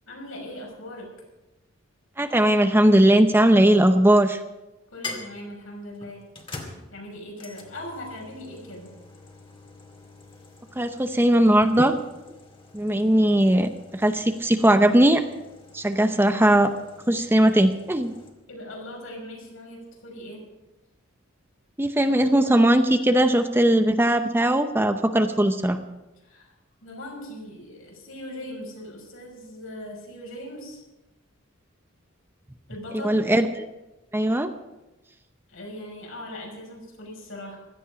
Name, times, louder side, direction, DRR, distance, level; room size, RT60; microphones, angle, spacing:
voice 1, 0.0-1.1 4.9-6.3 6.9-8.9 18.5-20.5 26.2-26.5 26.8-30.8 32.7-33.2 35.5-37.6, left 1 dB, 75° left, 0 dB, 5.8 m, -39 dB
voice 2, 2.2-4.4 10.8-11.9 12.7-15.2 15.7-16.7 17.1-18.1 21.8-25.8 32.9-33.7 34.1-34.5, right 1 dB, 10° right, 8 dB, 0.7 m, -19 dB
sound 1, 3.3-4.0 5.0-18.3, left 3 dB, 25° left, 2.3 m, -45 dB
16.5 x 13.0 x 5.0 m, 1.0 s
head